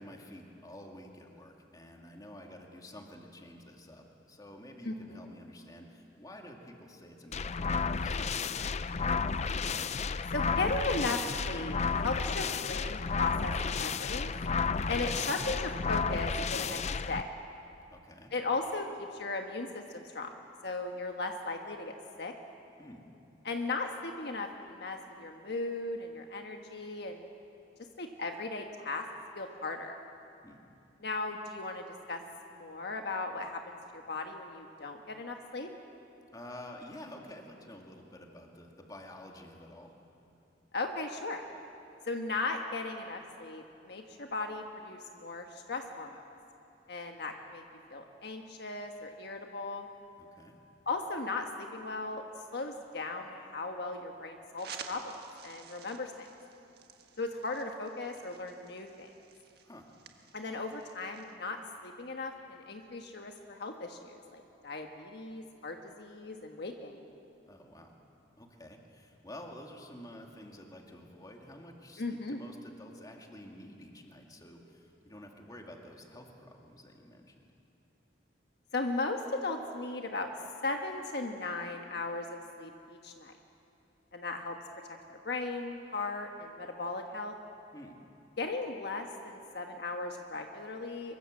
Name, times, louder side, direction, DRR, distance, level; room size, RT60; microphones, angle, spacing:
voice 1, 0.0-8.7 17.9-18.3 22.8-23.0 30.4-30.6 36.3-39.9 50.4-50.6 59.6-59.9 67.4-67.9 68.4-77.3 87.7-88.0, left 1 dB, 20° left, 1 dB, 2.4 m, -50 dB
voice 2, 4.8-5.2 10.3-11.2 11.4-14.3 14.9-16.8 17.1-17.3 18.3-20.3 20.6-22.3 23.4-27.3 28.0-29.0 29.3-30.0 31.0-32.2 32.5-35.7 40.7-41.4 42.0-46.2 46.9-47.6 47.9-49.9 50.9-52.2 52.5-55.2 55.4-56.3 57.2-59.1 60.3-67.1 72.0-72.4 78.7-80.3 80.6-83.3 84.1-84.6 84.9-87.4 88.4-91.2, left 3 dB, 65° left, 3 dB, 1.4 m, -37 dB
sound 1, 7.3-17.2, left 5 dB, 40° left, 0.5 m, -32 dB
sound 2, 54.6-61.4, right 7 dB, 60° right, 1.5 m, -52 dB
24.0 x 22.0 x 7.7 m, 2.7 s
head